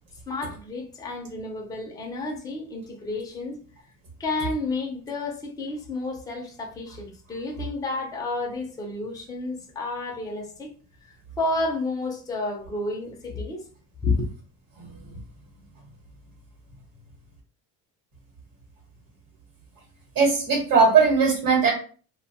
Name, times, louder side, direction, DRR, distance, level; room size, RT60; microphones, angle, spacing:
voice 1, 0.3-3.6 4.2-10.7 11.4-13.6 14.0-14.3, left 3 dB, 10° left, 0.5 m, -30 dB
voice 2, 20.1-21.7, right 5 dB, 45° right, 1.1 m, -19 dB
2.5 x 2.2 x 2.8 m
cardioid pair, 135°, 41 cm